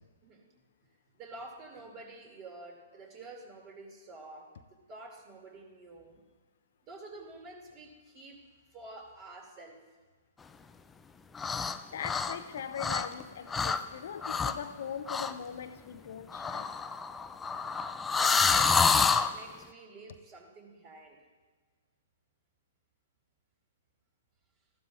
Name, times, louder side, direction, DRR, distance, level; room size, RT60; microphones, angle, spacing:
voice 1, 1.1-4.6 4.9-6.2 6.8-8.4 8.7-9.8 17.1-17.3 18.2-21.2, right 2 dB, 30° right, 1 dB, 2.5 m, -48 dB
sound 1, 11.4-11.8 12.0-13.2 13.5-13.8 14.2-14.6 15.1-15.3 16.3-19.3, left 5 dB, 15° left, 0.4 m, -27 dB
voice 2, 11.9-16.7, left 8 dB, 60° left, 10 dB, 0.6 m, -40 dB
14.5 x 12.0 x 2.5 m, 1.4 s
hypercardioid pair, 120°, 0 cm